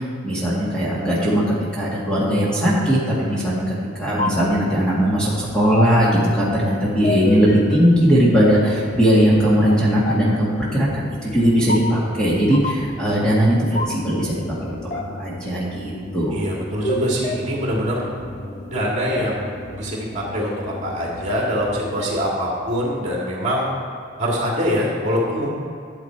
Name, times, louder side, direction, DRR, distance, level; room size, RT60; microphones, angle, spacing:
voice 1, 0.0-1.4 1.7-14.3 14.6-16.4, equal, 5° left, -7 dB, 1.8 m, -19 dB
sound 1, 4.1-22.3, left 2 dB, 35° left, 0.7 m, -31 dB
voice 2, 16.3-18.1 18.7-23.7 24.2-25.5, equal, 35° right, -3 dB, 2.3 m, -24 dB
12.0 x 7.3 x 4.5 m, 2.4 s
head